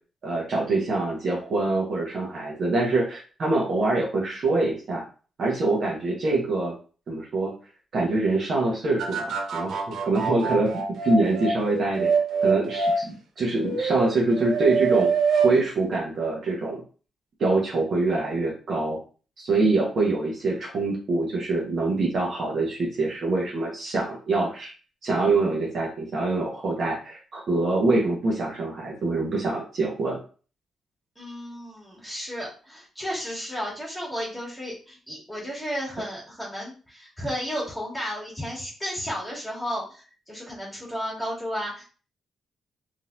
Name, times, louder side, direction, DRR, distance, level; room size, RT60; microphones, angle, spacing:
voice 1, 0.2-5.0 5.4-6.8 7.1-7.5 7.9-12.1 12.4-13.1 13.4-15.1 15.4-16.8 17.4-19.0 19.4-24.7 25.0-30.2, right 2 dB, 50° right, -3 dB, 1.1 m, -25 dB
sound 1, 9.0-13.0 13.6-15.6 15.9-16.0, right 5 dB, 70° right, 0.5 m, -25 dB
voice 2, 31.2-41.9, equal, ahead, -5 dB, 1.9 m, -33 dB
3.8 x 2.9 x 2.5 m, 0.37 s
cardioid pair, 120°, 0 cm